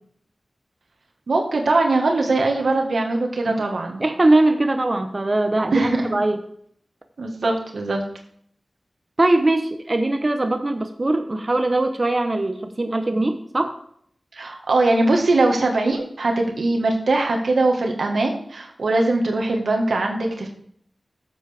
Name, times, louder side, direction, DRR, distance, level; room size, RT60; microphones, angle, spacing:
voice 1, 1.3-4.0 5.7-6.1 7.2-8.0 14.3-20.5, right 2 dB, 90° right, 2 dB, 1.5 m, -21 dB
voice 2, 4.0-6.4 9.2-13.7, right 2 dB, 40° right, 6 dB, 0.9 m, -21 dB
12.5 x 7.5 x 3.4 m, 0.67 s
wide cardioid pair, 60°, 0 cm